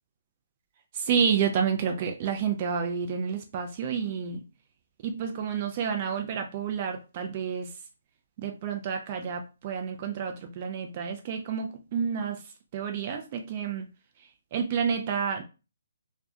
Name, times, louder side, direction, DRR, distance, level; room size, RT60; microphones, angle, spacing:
voice 1, 1.1-4.4 5.0-7.7 8.4-12.4 12.7-13.8 14.5-15.4, right 7 dB, 35° right, 5 dB, 0.3 m, -29 dB
2.3 x 2.1 x 2.6 m, 0.31 s
figure-of-eight pair, 140°, 0 cm